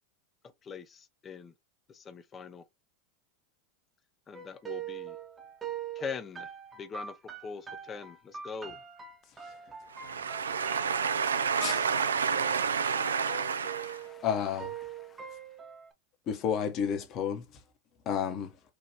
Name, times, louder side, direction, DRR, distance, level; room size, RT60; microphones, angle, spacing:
voice 1, 0.6-1.5 1.9-2.6 4.3-5.2 6.0-6.5 6.8-7.2 7.4-8.8 12.2-12.3 13.3-14.3 14.8-15.4, left 6 dB, 30° left, 0.6 m, -43 dB
sound 1, 4.3-15.9, right 8 dB, 20° right, 1.0 m, -43 dB
voice 2, 9.9-14.1, right 6 dB, 85° right, 0.4 m, -29 dB
voice 3, 14.2-14.7 16.3-17.4 18.1-18.5, left 8 dB, 45° left, 1.0 m, -30 dB
4.6 x 2.5 x 2.9 m
hypercardioid pair, 90°, 0 cm